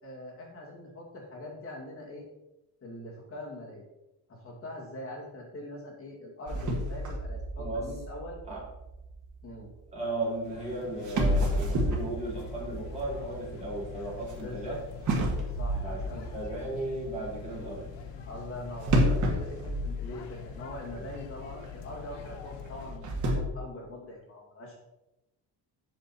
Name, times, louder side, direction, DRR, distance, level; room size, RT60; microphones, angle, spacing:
voice 1, 0.0-2.3 2.8-3.8 4.3-8.4 9.4-9.7 14.4-14.8 15.4-16.3 18.2-24.8, left 1 dB, 30° left, -3 dB, 2.3 m, -43 dB
sound 1, 6.5-9.6 10.6-10.7 11.1-14.4 15.1-16.9 18.8-20.6 20.9-21.0 21.6-21.7 22.7-23.4, equal, 40° right, 1.7 m, -30 dB
voice 2, 7.6-7.9 8.5-8.6 9.9-14.8 15.7-17.9 21.0-21.1, right 2 dB, 15° right, -6 dB, 3.2 m, -36 dB
sound 2, 10.4-23.0, left 6 dB, 65° left, 1.2 m, -44 dB
8.1 x 6.4 x 4.3 m, 0.94 s
cardioid pair, 175°, 45 cm